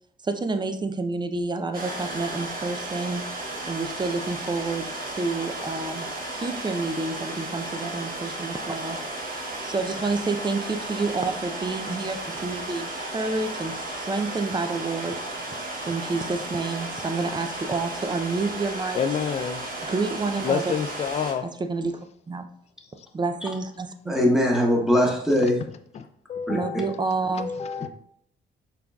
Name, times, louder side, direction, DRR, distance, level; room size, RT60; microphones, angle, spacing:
voice 1, 0.2-3.2 3.6-9.0 9.6-15.2 15.8-19.0 19.9-20.7 21.7-22.5 23.1-24.2 26.5-27.5, right 3 dB, 20° right, 0.5 m, -29 dB
sound 1, 1.7-21.3, right 2 dB, 45° right, 1.3 m, -34 dB
voice 2, 18.9-19.6 20.4-21.5 25.4-25.5 25.9-27.0 27.3-27.9, left 7 dB, 35° left, 0.4 m, -29 dB
voice 3, 24.1-25.6 26.5-26.6, equal, ahead, 1.2 m, -21 dB
5.8 x 3.9 x 2.3 m
cardioid pair, 90°, 20 cm